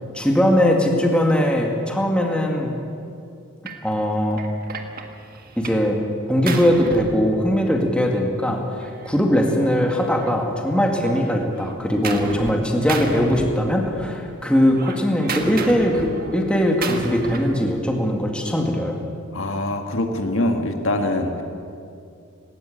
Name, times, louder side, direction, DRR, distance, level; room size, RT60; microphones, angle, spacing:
voice 1, 0.1-2.7 3.8-4.4 5.6-6.0 6.3-19.0, equal, 5° left, 1 dB, 2.1 m, -20 dB
Gunshot gunfire, 3.7-3.9 4.4-5.9 6.2-7.9 8.8-10.7 11.0-12.6 12.9-14.1 14.4-17.6, right 3 dB, 45° right, 1.7 m, -33 dB
voice 2, 19.3-21.4, left 1 dB, 70° left, 5 dB, 1.8 m, -23 dB
19.0 x 18.0 x 8.7 m, 2.5 s
head